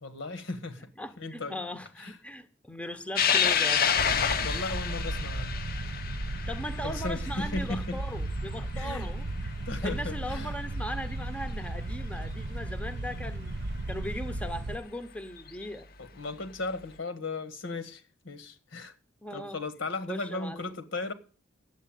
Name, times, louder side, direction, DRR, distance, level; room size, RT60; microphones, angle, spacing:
voice 1, 0.0-0.9 1.2-1.6 2.0-2.2 4.4-5.6 6.8-8.0 8.7-9.1 9.7-10.6 16.0-18.9 19.3-21.1, left 3 dB, 70° left, 1.7 m, -36 dB
voice 2, 1.0-3.9 6.5-9.5 9.8-13.5 13.9-15.9 19.2-19.6 20.1-20.7, equal, 5° left, 0.8 m, -38 dB
sound 1, 3.2-9.8 10.3-10.4 11.6-11.7 13.9-14.0 15.4-15.6, left 7 dB, 50° left, 0.8 m, -29 dB
sound 2, 4.0-14.8, right 2 dB, 55° right, 0.7 m, -35 dB
10.0 x 8.1 x 9.2 m
head